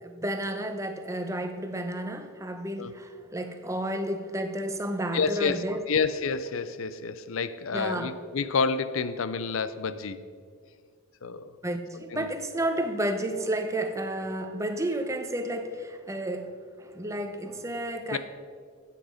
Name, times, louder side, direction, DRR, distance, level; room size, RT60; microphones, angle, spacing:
voice 1, 0.0-5.8 7.7-8.1 11.6-18.2, right 1 dB, 15° right, 7 dB, 0.8 m, -31 dB
voice 2, 5.1-10.2 11.2-11.6 12.1-12.3 18.1-18.2, left 5 dB, 75° left, 13 dB, 0.5 m, -29 dB
14.0 x 8.5 x 5.1 m, 2.1 s
head